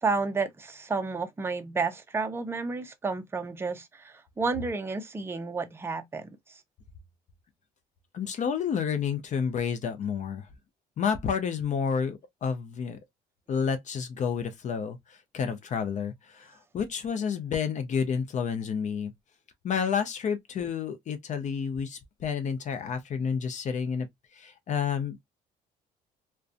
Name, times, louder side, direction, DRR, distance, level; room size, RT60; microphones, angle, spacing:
voice 1, 0.0-6.6, right 4 dB, 15° right, 0.5 m, -31 dB
voice 2, 8.1-10.5 11.0-13.0 13.5-19.1 19.6-24.1 24.3-25.2, left 6 dB, 45° left, 0.6 m, -30 dB
2.5 x 2.2 x 2.4 m
cardioid pair, 110°, 17 cm